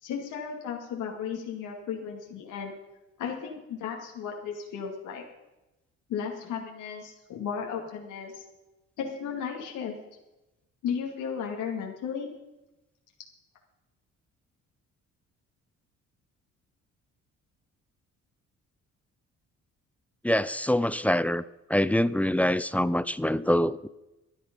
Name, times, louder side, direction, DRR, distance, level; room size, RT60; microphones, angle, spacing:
voice 1, 0.0-2.7 3.2-5.2 6.1-8.4 9.0-9.9 10.8-12.3, left 7 dB, 90° left, 0 dB, 2.4 m, -34 dB
voice 2, 20.2-21.4 21.7-23.9, left 1 dB, 5° left, 16 dB, 0.5 m, -25 dB
17.0 x 10.5 x 5.3 m, 0.98 s
cardioid pair, 90°, 30 cm